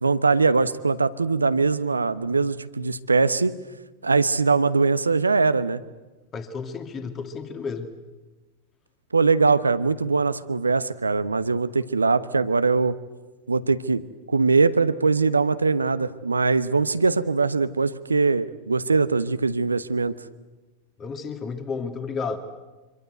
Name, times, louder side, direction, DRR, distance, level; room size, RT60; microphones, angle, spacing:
voice 1, 0.0-3.5 4.0-5.8 9.1-12.9 13.5-14.0 14.3-20.1, right 4 dB, 80° right, 14 dB, 1.1 m, -21 dB
voice 2, 6.3-7.9 21.0-22.4, left 5 dB, 25° left, 7 dB, 2.4 m, -32 dB
26.0 x 25.0 x 8.0 m, 1.2 s
figure-of-eight pair, 90°, 0 cm